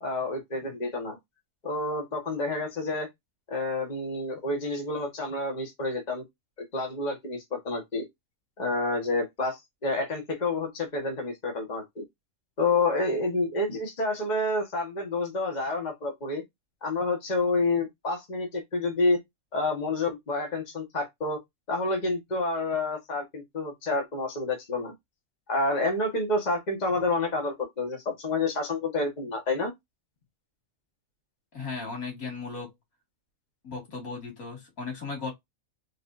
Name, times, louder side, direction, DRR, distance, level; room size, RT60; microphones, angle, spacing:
voice 1, 0.0-1.2 1.6-3.1 3.5-6.2 6.7-8.0 8.6-12.0 12.6-16.4 16.8-19.2 19.5-21.4 21.7-24.9 25.5-29.7, left 2 dB, 30° left, 1.4 m, -29 dB
voice 2, 31.5-32.7 33.6-35.3, left 4 dB, 80° left, 2.6 m, -36 dB
4.8 x 3.1 x 2.6 m
omnidirectional pair, 1.5 m